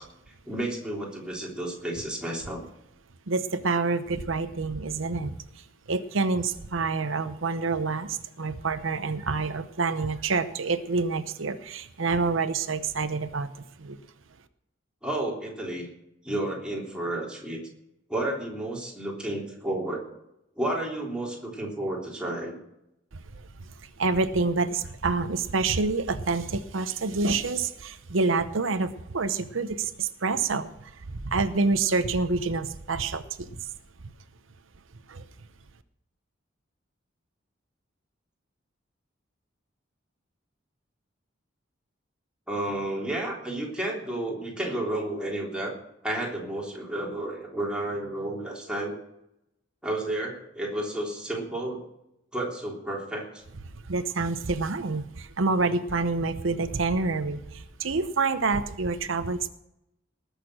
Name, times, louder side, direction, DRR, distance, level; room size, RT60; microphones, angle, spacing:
voice 1, 0.4-2.6 15.0-15.9 16.2-17.7 18.1-20.0 20.6-22.6 42.5-45.7 46.0-48.9 49.8-51.8 52.3-53.4, right 1 dB, 5° right, -3 dB, 3.4 m, -31 dB
voice 2, 3.3-5.4 5.9-13.5 13.8-14.0 23.1-23.2 24.0-33.5 35.1-35.2 53.8-59.5, right 3 dB, 90° right, 10 dB, 0.8 m, -27 dB
19.5 x 6.7 x 6.4 m, 0.83 s
head